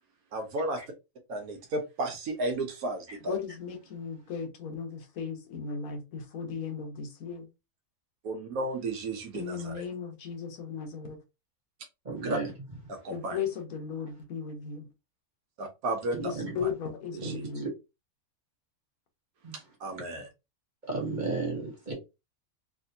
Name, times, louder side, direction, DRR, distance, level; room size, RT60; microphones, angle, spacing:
voice 1, 0.3-0.8 1.3-3.4 8.2-9.9 12.2-12.4 12.9-13.4 15.6-16.3 17.2-17.4 19.5-20.3, right 2 dB, 80° right, 1.2 m, -33 dB
voice 2, 3.2-7.5 9.3-11.2 13.1-14.9 16.2-17.7, left 6 dB, 70° left, 1.3 m, -36 dB
voice 3, 12.0-12.5 16.1-16.5 17.2-17.7 19.4-19.5 19.9-20.0 20.9-21.9, right 3 dB, 35° right, 1.4 m, -34 dB
3.3 x 2.9 x 2.7 m
omnidirectional pair, 1.5 m